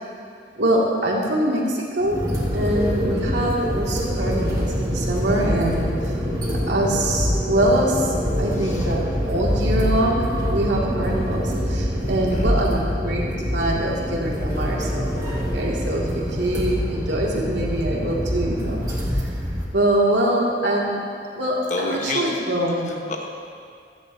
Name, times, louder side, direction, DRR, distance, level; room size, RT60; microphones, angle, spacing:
voice 1, 0.6-2.2 2.5-6.1 6.7-18.8 19.7-21.0 21.4-23.0, right 1 dB, 90° right, -3 dB, 2.1 m, -24 dB
sound 1, 2.0-19.6, equal, 20° right, 2.1 m, -25 dB
voice 2, 8.6-8.9 12.3-12.5 21.7-22.3 23.1-23.3, left 2 dB, 45° left, 0 dB, 1.1 m, -29 dB
16.0 x 14.0 x 2.7 m, 2.4 s
head